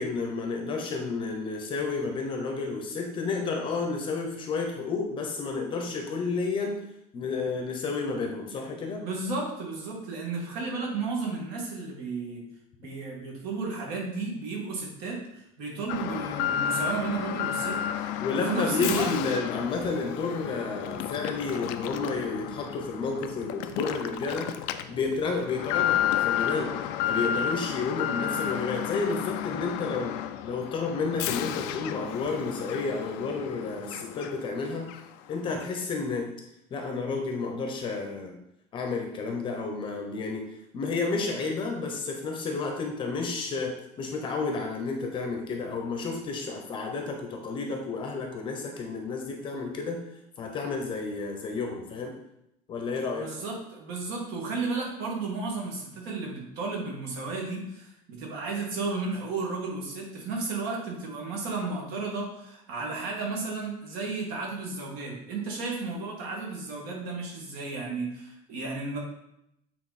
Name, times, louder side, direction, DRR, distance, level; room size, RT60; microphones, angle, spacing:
voice 1, 0.0-6.8 7.1-9.0 18.2-24.5 24.9-26.8 27.0-30.1 30.4-34.9 35.3-36.3 36.7-38.4 38.7-40.4 40.7-50.0 50.4-52.1 52.7-53.3, left 4 dB, 30° left, 3 dB, 0.9 m, -31 dB
voice 2, 9.0-12.4 12.8-19.1 53.1-69.0, right 3 dB, 55° right, -1 dB, 2.3 m, -33 dB
Alarm, 15.9-34.6 34.9-35.0 35.6-35.7, left 10 dB, 65° left, 0.5 m, -32 dB
8.3 x 4.1 x 4.2 m, 0.81 s
cardioid pair, 170°, 18 cm